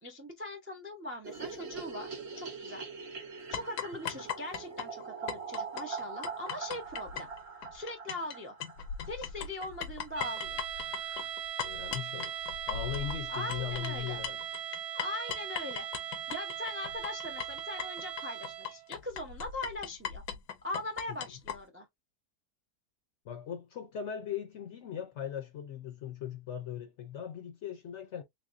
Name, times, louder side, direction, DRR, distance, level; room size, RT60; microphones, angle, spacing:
voice 1, 0.0-2.9 3.5-7.3 7.7-8.6 9.1-10.6 13.3-14.2 14.9-20.2 20.6-21.9, left 2 dB, 20° right, 0.3 m, -41 dB
sound 1, 1.2-9.5 9.7-9.8 10.1-10.2 10.4-10.5 10.7-11.3, right 5 dB, 45° right, 1.0 m, -43 dB
sound 2, 3.5-8.4 8.6-21.6, left 8 dB, 85° left, 1.3 m, -39 dB
sound 3, 10.1-18.9, right 9 dB, 75° right, 1.1 m, -39 dB
voice 2, 11.6-12.3 12.7-14.4 21.1-21.2 23.2-28.2, left 9 dB, 60° left, 0.8 m, -39 dB
3.5 x 3.3 x 2.5 m
omnidirectional pair, 1.7 m